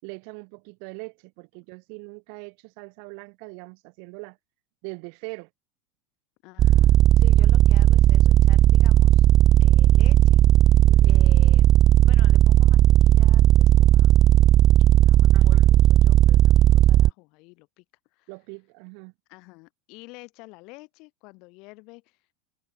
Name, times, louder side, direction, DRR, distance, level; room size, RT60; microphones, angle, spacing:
voice 1, 0.0-4.4 4.8-5.5 10.9-11.2 15.3-15.6 18.3-19.1, right 40 dB or more, 60° right, 6.0 m, -41 dB
voice 2, 6.4-9.3 9.6-10.4 10.6-11.7 12.0-14.1 15.0-17.8 18.1-18.3 19.3-22.3, left 27 dB, 55° left, 5.9 m, -48 dB
sound 1, 6.6-17.1, right 12 dB, 40° right, 0.3 m, -16 dB
supercardioid pair, 115°, 0 cm